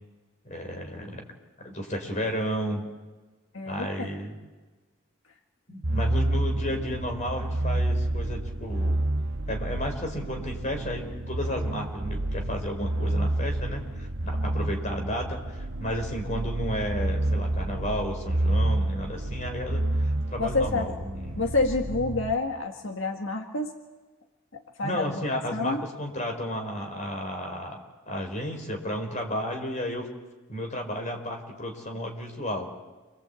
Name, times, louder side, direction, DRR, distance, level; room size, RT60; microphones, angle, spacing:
voice 1, 0.4-1.2 1.6-2.8 3.6-4.4 5.7-9.0 9.5-21.6 24.8-27.8 28.1-30.1 30.5-32.7, equal, 35° left, 3 dB, 4.6 m, -33 dB
voice 2, 3.5-4.1 20.4-20.9 21.4-23.7 24.5-25.8, left 3 dB, 75° left, 3 dB, 1.8 m, -28 dB
sound 1, 5.8-22.3, right 1 dB, 80° right, 1.3 m, -29 dB
28.5 x 22.5 x 8.5 m, 1.3 s
head